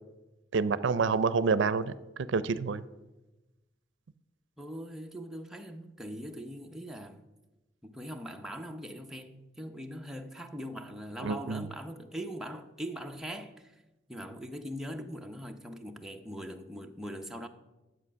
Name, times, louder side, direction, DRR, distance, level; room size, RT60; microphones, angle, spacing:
voice 1, 0.5-1.9 2.3-2.8 11.2-11.7, right 4 dB, 80° right, 0.5 m, -27 dB
voice 2, 4.6-7.2 7.8-13.8 14.1-17.5, equal, ahead, 0.7 m, -41 dB
11.0 x 7.8 x 6.1 m
head